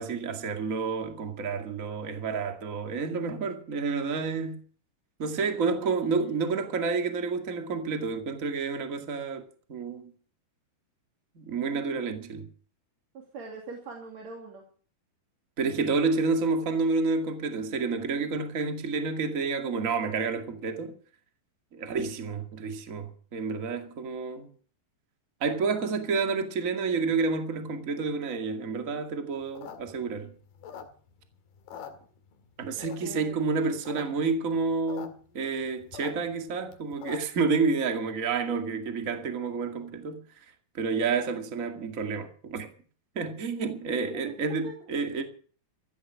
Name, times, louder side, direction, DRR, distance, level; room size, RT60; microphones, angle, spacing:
voice 1, 0.0-4.6 5.2-10.1 11.4-12.5 15.6-20.9 21.7-24.5 25.4-30.3 32.6-40.2 40.7-42.7 43.2-45.2, right 4 dB, 30° right, 1.8 m, -29 dB
voice 2, 5.8-6.4 13.1-14.7 25.9-26.2 32.8-33.8 44.0-44.4 44.6-44.7, right 3 dB, 50° right, 3.5 m, -43 dB
sound 1, 29.4-31.2 31.6-32.5 32.8-33.3 33.7-34.0 34.3-34.4 34.6-35.1 35.4-37.4, left 8 dB, 80° left, 4.0 m, -43 dB
16.0 x 12.0 x 6.3 m
omnidirectional pair, 4.4 m